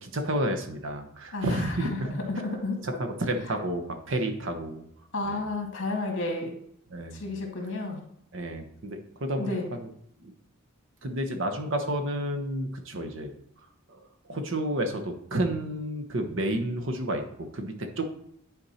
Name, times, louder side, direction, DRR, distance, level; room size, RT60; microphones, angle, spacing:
voice 1, 0.0-2.1 2.8-4.8 5.2-5.4 6.9-7.3 8.3-9.6 9.8-9.9 10.2-10.3 11.0-13.3 13.9-18.1, right 1 dB, 60° right, 5 dB, 1.0 m, -31 dB
voice 2, 1.3-2.8 5.1-6.6 7.1-8.0 9.4-9.7, left 2 dB, 60° left, 1 dB, 2.1 m, -31 dB
10.0 x 4.4 x 4.2 m, 0.70 s
head